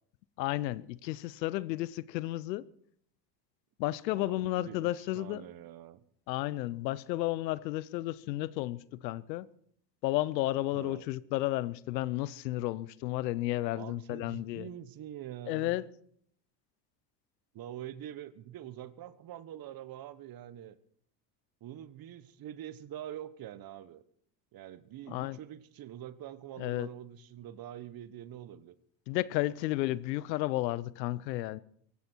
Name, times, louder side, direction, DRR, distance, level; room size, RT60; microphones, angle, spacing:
voice 1, 0.4-2.7 3.8-5.4 6.3-9.5 10.0-14.7 15.5-15.8 25.1-25.4 26.6-26.9 29.1-31.6, left 16 dB, 90° left, 0.8 m, -32 dB
voice 2, 4.1-6.0 10.7-11.0 13.7-15.8 17.5-20.8 21.6-24.0 24.5-28.7, right 11 dB, 45° right, 1.2 m, -45 dB
17.5 x 16.0 x 4.5 m
supercardioid pair, 90°, 49 cm